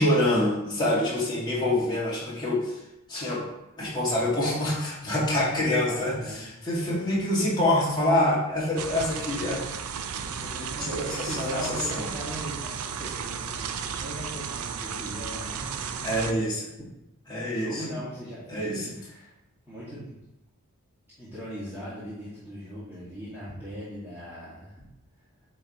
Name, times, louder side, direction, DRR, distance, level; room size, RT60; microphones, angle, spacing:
voice 1, 0.0-2.8 3.1-3.5 3.8-9.6 10.8-12.1 16.0-16.6 17.3-17.8 18.5-18.9, left 1 dB, 20° left, -7 dB, 2.1 m, -26 dB
voice 2, 5.8-6.5 6.8-7.1 10.1-16.7 17.4-19.3 19.7-20.2 21.2-24.8, equal, 10° right, -12 dB, 1.8 m, -40 dB
sound 1, 8.8-16.3, right 7 dB, 85° right, 0.5 m, -34 dB
8.7 x 3.2 x 4.2 m, 0.91 s
head